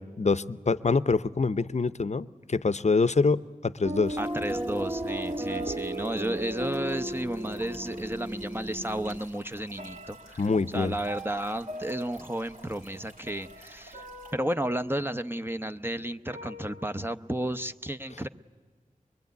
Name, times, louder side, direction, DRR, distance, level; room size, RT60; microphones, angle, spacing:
voice 1, 0.0-4.2 10.4-11.0, left 4 dB, 50° left, 16 dB, 0.7 m, -25 dB
sound 1, 3.8-9.2, right 1 dB, 35° right, 1.3 m, -34 dB
sound 2, 4.0-14.3, right 1 dB, 75° right, 3.2 m, -53 dB
voice 2, 4.2-14.1 14.3-18.3, right 1 dB, 15° right, 8 dB, 0.8 m, -33 dB
sound 3, 5.5-7.0 8.1-8.2 8.7-9.3 9.8-15.7 16.3-17.1, right 2 dB, 55° right, 1.5 m, -45 dB
23.5 x 22.0 x 9.4 m, 1.5 s
wide cardioid pair, 40°, 14 cm